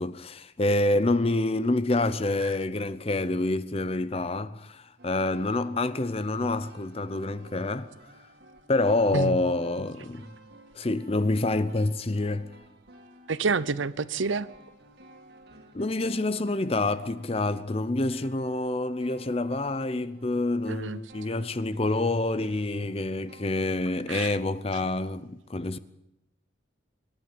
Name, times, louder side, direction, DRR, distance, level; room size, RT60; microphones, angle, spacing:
voice 1, 0.0-7.9 8.7-10.3 10.7-12.5 15.7-25.8, left 2 dB, 30° left, 0.6 m, -27 dB
sound 1, 5.0-23.5, right 1 dB, 55° right, 2.4 m, -54 dB
voice 2, 13.3-14.5 20.7-21.0 24.1-24.4, right 4 dB, 75° right, 0.7 m, -28 dB
25.0 x 11.5 x 9.0 m
head